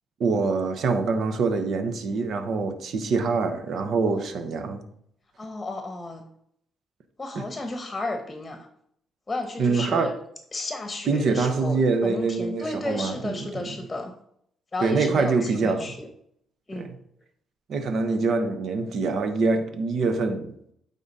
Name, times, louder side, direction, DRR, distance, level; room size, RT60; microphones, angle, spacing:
voice 1, 0.2-4.8 9.6-10.1 11.1-13.7 14.8-15.9 16.7-16.9 17.7-20.5, right 4 dB, 65° right, 7 dB, 0.9 m, -25 dB
voice 2, 5.4-6.2 7.2-8.7 9.3-10.1 10.5-14.1 14.7-16.1 16.7-16.9, left 2 dB, 20° left, 5 dB, 1.0 m, -33 dB
9.0 x 3.8 x 4.1 m, 0.70 s
cardioid pair, 90°, 0 cm